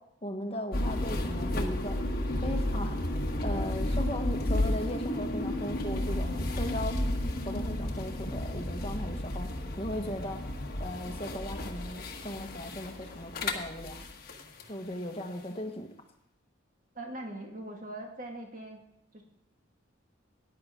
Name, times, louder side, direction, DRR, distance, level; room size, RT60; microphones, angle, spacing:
voice 1, 0.2-2.0 2.4-3.0 3.4-7.0 7.4-9.5 9.8-10.4 10.8-14.0 14.7-15.9, left 1 dB, 30° left, 5 dB, 1.2 m, -37 dB
sound 1, 0.7-14.7, left 1 dB, 45° left, 1.3 m, -32 dB
voice 2, 16.9-18.8 19.1-19.2, right 1 dB, 40° right, 1 dB, 1.9 m, -41 dB
13.5 x 10.5 x 3.7 m, 0.80 s
head